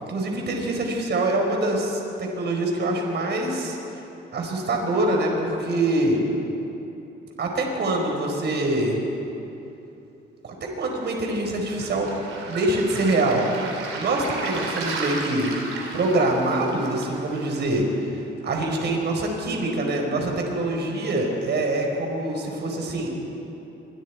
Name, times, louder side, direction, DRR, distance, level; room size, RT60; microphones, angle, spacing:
voice 1, 0.1-3.8 4.3-6.2 7.4-9.0 10.4-12.1 12.5-15.5 15.9-18.1 18.4-23.1, right 2 dB, 60° right, 1 dB, 4.6 m, -24 dB
Waves surf, 11.7-17.7, right 3 dB, 90° right, 3.6 m, -34 dB
26.0 x 23.0 x 4.7 m, 3.0 s
cardioid pair, 90°, 20 cm